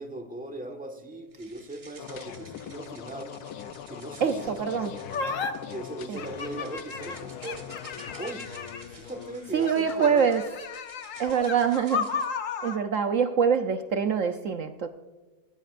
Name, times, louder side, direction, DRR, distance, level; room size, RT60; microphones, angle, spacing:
voice 1, 0.0-3.4 3.9-4.6 5.7-7.6 8.2-8.5 8.9-10.3, right 2 dB, 5° right, 4 dB, 1.3 m, -39 dB
sound 1, 1.3-12.3, right 3 dB, 25° right, 1.0 m, -52 dB
sound 2, 2.0-10.3, left 9 dB, 90° left, 1.2 m, -42 dB
voice 2, 4.2-4.9 6.1-6.2 9.5-10.5 11.2-12.3 12.6-14.9, right 7 dB, 65° right, 7 dB, 1.0 m, -25 dB
sound 3, 5.1-5.5 6.2-9.0 9.6-12.8, left 5 dB, 60° left, 1.3 m, -34 dB
19.5 x 16.5 x 2.5 m, 1.2 s
omnidirectional pair, 1.6 m